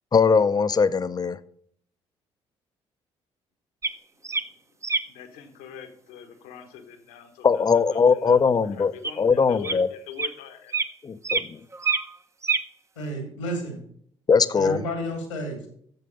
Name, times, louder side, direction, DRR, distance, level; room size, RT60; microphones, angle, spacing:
voice 1, 0.1-1.4 7.4-8.9 9.2-9.9 11.0-11.6 14.3-14.8, left 5 dB, 25° left, 14 dB, 0.6 m, -20 dB
sound 1, 3.8-3.9 4.2-4.4 4.8-5.0 9.0-9.1 9.6-9.7 10.2-10.3 10.7-10.9 11.2-11.4 11.7-12.2 12.4-12.6, right 5 dB, 20° right, 0.7 m, -25 dB
voice 2, 4.2-4.8 5.1-10.7, left 9 dB, 65° left, 8 dB, 1.2 m, -43 dB
voice 3, 13.0-13.8 14.5-15.7, equal, 80° left, 5 dB, 2.2 m, -31 dB
7.8 x 7.5 x 5.2 m, 0.65 s
figure-of-eight pair, 45°, 15 cm